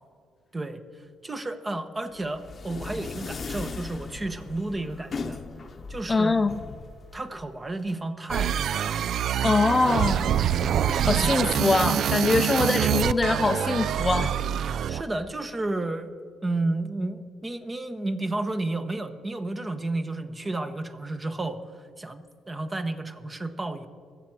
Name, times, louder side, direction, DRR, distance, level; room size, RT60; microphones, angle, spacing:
voice 1, 0.5-5.4 5.9-6.4 7.1-9.0 14.9-16.1 16.4-23.9, right 2 dB, 25° right, 1.0 m, -32 dB
sound 1, 2.2-8.0, left 4 dB, 40° left, 0.8 m, -38 dB
voice 2, 6.1-6.6 9.4-10.3 11.0-14.4, left 3 dB, 25° left, 0.5 m, -23 dB
sound 2, 8.3-15.0, right 9 dB, 70° right, 0.3 m, -25 dB
21.0 x 7.7 x 4.6 m
cardioid pair, 90°, 0 cm